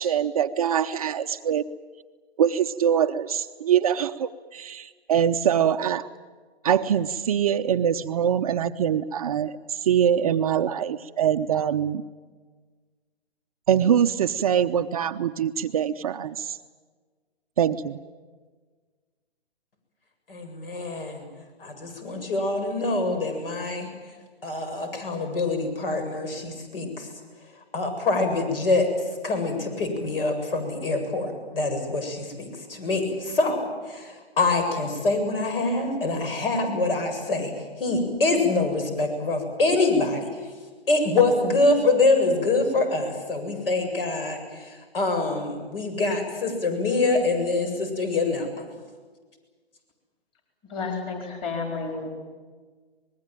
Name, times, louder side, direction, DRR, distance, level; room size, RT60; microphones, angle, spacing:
voice 1, 0.0-1.6 2.4-6.1 6.6-12.0 13.7-16.6 17.6-18.0, right 9 dB, 35° right, 8 dB, 0.7 m, -23 dB
voice 2, 20.3-21.3 21.6-23.9 24.4-27.1 27.7-28.9 29.2-40.4 40.9-48.7, left 3 dB, 60° left, 6 dB, 7.7 m, -25 dB
voice 3, 50.6-52.1, left 4 dB, 15° left, 3 dB, 4.3 m, -31 dB
24.5 x 21.0 x 9.1 m, 1.4 s
hypercardioid pair, 155°, 31 cm